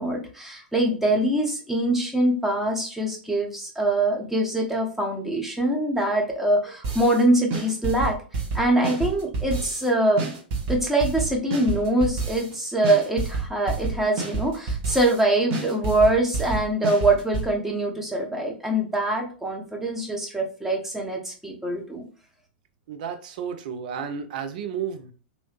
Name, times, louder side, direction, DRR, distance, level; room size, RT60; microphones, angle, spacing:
voice 1, 0.0-8.1 8.5-10.3 10.7-22.0, right 1 dB, 5° right, 0 dB, 0.8 m, -23 dB
sound 1, 6.8-7.2 7.5-9.9 10.2-12.5 12.8-15.2 15.5-17.5, right 4 dB, 40° right, 1.2 m, -29 dB
voice 2, 22.9-25.1, right 7 dB, 55° right, 7 dB, 0.6 m, -32 dB
3.0 x 2.7 x 3.0 m, 0.39 s
figure-of-eight pair, 95°, 5 cm